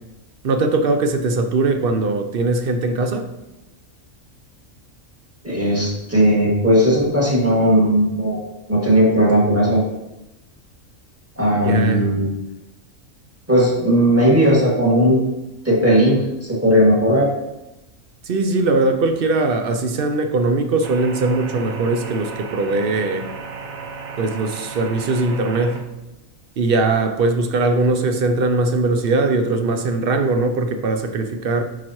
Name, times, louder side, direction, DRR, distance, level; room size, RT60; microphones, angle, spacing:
voice 1, 0.4-3.3 11.6-12.1 18.2-23.3 24.2-25.8 26.6-31.6, right 3 dB, 55° right, 6 dB, 0.6 m, -20 dB
voice 2, 5.4-8.4 8.7-9.8 11.4-12.3 13.5-15.2 15.6-16.2 16.5-17.3, equal, 10° right, -6 dB, 1.9 m, -16 dB
sound 1, 20.8-25.8, right 5 dB, 85° right, 1.2 m, -34 dB
11.0 x 4.1 x 3.0 m, 0.97 s
omnidirectional pair, 1.4 m